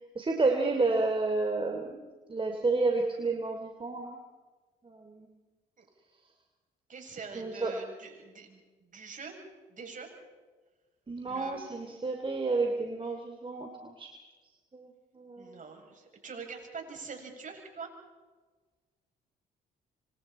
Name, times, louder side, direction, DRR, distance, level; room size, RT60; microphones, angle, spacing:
voice 1, 0.1-4.2 4.8-5.3 7.3-7.7 11.1-14.1 14.7-14.9 15.1-15.5, right 3 dB, 30° right, 4 dB, 3.1 m, -30 dB
voice 2, 6.9-9.3 9.7-10.1 11.2-11.6 15.4-17.9, right 5 dB, 45° right, 2 dB, 7.6 m, -44 dB
27.5 x 26.5 x 4.4 m, 1.3 s
supercardioid pair, 65°, 19 cm